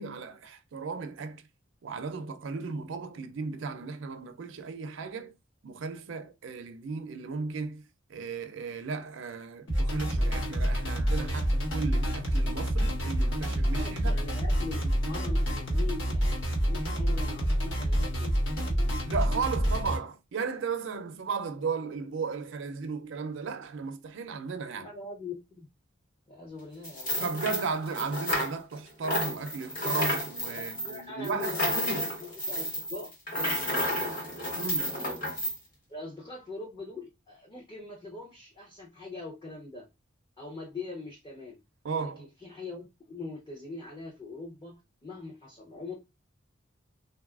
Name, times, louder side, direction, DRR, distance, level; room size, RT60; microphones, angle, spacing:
voice 1, 0.0-1.4 1.8-5.3 5.6-7.8 8.1-14.2 19.0-24.9 27.2-32.1 34.5-35.0 41.8-42.3, right 5 dB, 65° right, 0.4 m, -35 dB
sound 1, 9.7-20.0, equal, 65° left, 1.2 m, -28 dB
voice 2, 13.8-18.7 24.7-25.7 26.3-27.1 30.8-34.3 35.9-39.9 40.4-41.6 42.0-45.9, left 3 dB, 25° left, 0.6 m, -42 dB
sound 2, 26.8-28.8 29.0-35.6, equal, 40° left, 0.9 m, -31 dB
3.6 x 2.3 x 2.3 m
head